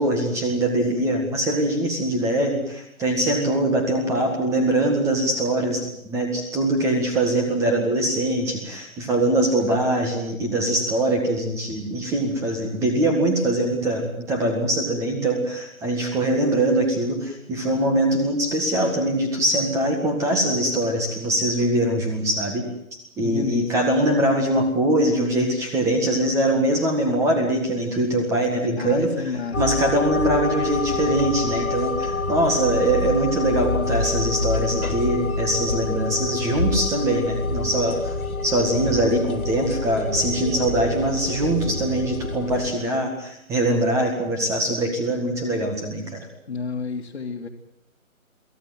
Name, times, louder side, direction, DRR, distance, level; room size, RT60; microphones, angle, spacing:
voice 1, 0.0-38.1 38.4-46.3, right 1 dB, 5° right, 4 dB, 1.8 m, -23 dB
voice 2, 23.2-23.7 28.8-29.6 46.5-47.5, left 5 dB, 55° left, -2 dB, 2.5 m, -30 dB
sound 1, 29.5-42.7, left 3 dB, 90° left, 3.9 m, -27 dB
23.5 x 16.5 x 9.3 m, 0.74 s
figure-of-eight pair, 160°, 42 cm